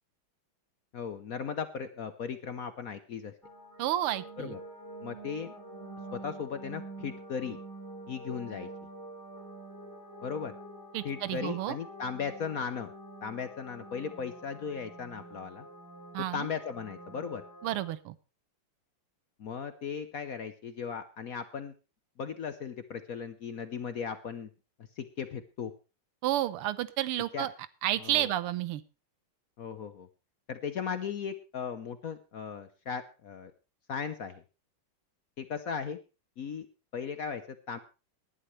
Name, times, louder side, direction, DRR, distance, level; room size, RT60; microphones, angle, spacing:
voice 1, 0.9-3.3 4.4-4.6 5.0-5.5 6.1-7.6 8.1-8.7 10.2-10.5 11.0-12.9 13.2-15.7 16.3-17.4 19.4-21.7 22.2-24.5 25.0-25.7 27.3-27.5 28.0-28.3 29.6-30.1 30.5-33.5 33.9-34.4 35.4-36.0 36.4-36.7 36.9-37.8, left 6 dB, 60° left, 10 dB, 1.0 m, -37 dB
sound 1, 3.4-17.9, right 1 dB, 10° left, 3.3 m, -47 dB
voice 2, 3.8-4.5 10.9-11.8 16.1-16.5 17.6-18.1 26.2-27.5 27.8-28.8, right 13 dB, 90° right, 16 dB, 1.7 m, -31 dB
19.0 x 11.0 x 3.2 m, 0.31 s
omnidirectional pair, 2.4 m